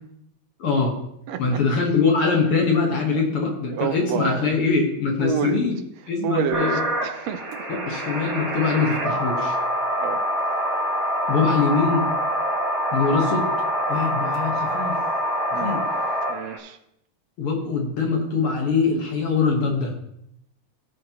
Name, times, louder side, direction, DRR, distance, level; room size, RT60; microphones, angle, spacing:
voice 1, 0.6-1.0 1.4-5.8 6.1-6.8 7.9-9.6 11.3-12.1 12.9-13.5 13.9-14.9 15.6-15.8 17.4-19.9, left 4 dB, 55° left, 2.0 m, -22 dB
voice 2, 1.3-1.6 3.1-3.2 3.7-4.5 5.2-5.6 6.2-7.7 10.0-10.3 15.5-15.8 16.3-16.8, right 9 dB, 75° right, 1.7 m, -29 dB
sound 1, 6.5-16.6, equal, 35° right, 2.0 m, -25 dB
17.0 x 6.4 x 2.9 m
omnidirectional pair, 3.3 m